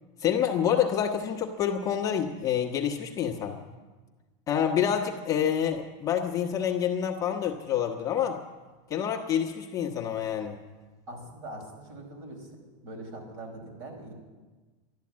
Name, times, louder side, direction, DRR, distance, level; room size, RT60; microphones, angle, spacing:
voice 1, 0.2-3.6 4.5-8.4 8.9-10.6, left 9 dB, 20° left, 0 dB, 1.1 m, -27 dB
voice 2, 11.1-12.6 12.8-14.1, right 1 dB, 60° right, 2 dB, 5.3 m, -42 dB
12.5 x 12.0 x 8.5 m, 1.3 s
supercardioid pair, 170°, 16 cm